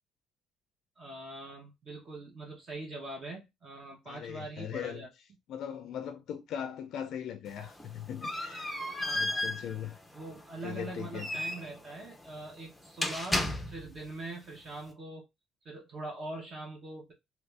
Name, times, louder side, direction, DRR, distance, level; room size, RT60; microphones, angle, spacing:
voice 1, 1.0-5.1 8.9-9.5 10.1-15.2 15.6-17.1, right 2 dB, 35° right, 0.9 m, -43 dB
voice 2, 4.1-5.1 5.5-8.8 9.1-10.0 10.6-11.3, left 9 dB, 60° left, 0.4 m, -39 dB
sound 1, 7.5-14.1, left 1 dB, 5° left, 0.6 m, -35 dB
3.0 x 2.5 x 3.3 m
cardioid pair, 150°, 0 cm